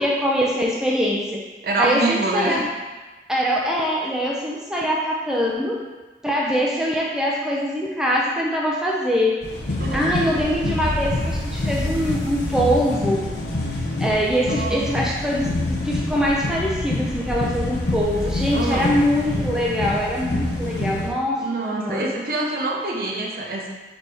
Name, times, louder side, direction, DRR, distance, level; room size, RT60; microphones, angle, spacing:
voice 1, 0.0-1.4 1.8-2.6 3.3-5.8 6.2-9.5 9.9-13.3 14.0-21.5 21.7-22.1, equal, 5° right, -3 dB, 0.4 m, -23 dB
voice 2, 1.6-2.7 9.8-10.0 14.5-14.9 18.5-18.9 21.4-23.7, right 2 dB, 55° right, -2 dB, 0.7 m, -25 dB
sound 1, 9.4-21.1, left 2 dB, 75° left, 0.7 m, -26 dB
3.8 x 3.5 x 3.4 m, 1.2 s
head